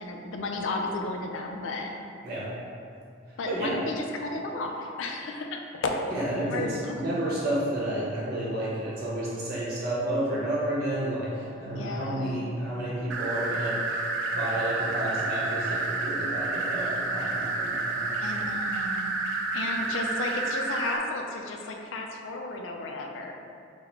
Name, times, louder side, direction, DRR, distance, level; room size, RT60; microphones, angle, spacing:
voice 1, 0.0-1.9 3.4-6.0 6.5-7.3 11.7-12.4 18.2-19.2 19.5-23.3, left 2 dB, 75° left, 3 dB, 0.4 m, -33 dB
voice 2, 6.1-11.3 11.6-13.8 14.3-18.3, right 1 dB, 50° right, -7 dB, 1.1 m, -31 dB
sound 1, 13.1-21.0, right 3 dB, 75° right, 0.4 m, -30 dB
3.9 x 2.1 x 4.3 m, 2.5 s
head